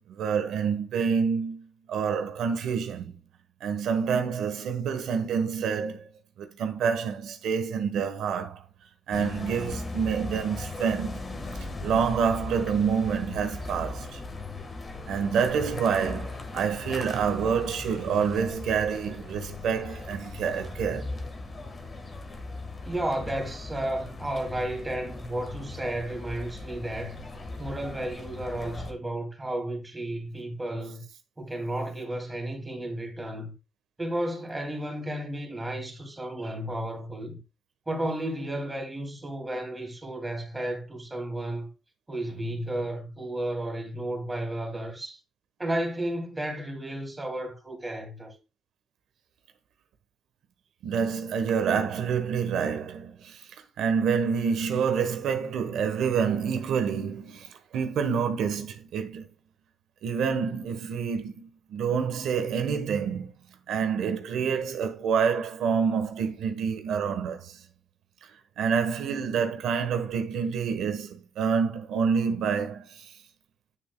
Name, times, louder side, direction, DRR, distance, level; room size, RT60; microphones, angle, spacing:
voice 1, 0.0-3.1 3.6-6.1 6.4-8.6 9.1-11.2 11.6-14.2 15.1-21.1 50.8-53.5 53.8-59.3 60.0-63.3 63.7-67.6 68.2-68.3 68.6-73.1, right 6 dB, 80° right, 1.2 m, -27 dB
sound 1, 9.1-28.9, left 3 dB, 35° left, 1.5 m, -38 dB
voice 2, 22.8-27.2 27.6-31.0 31.4-33.5 34.0-37.4 37.9-41.7 42.1-45.2 45.6-48.3, right 1 dB, 15° right, 2.5 m, -33 dB
8.8 x 7.2 x 2.3 m
cardioid pair, 90°, 0 cm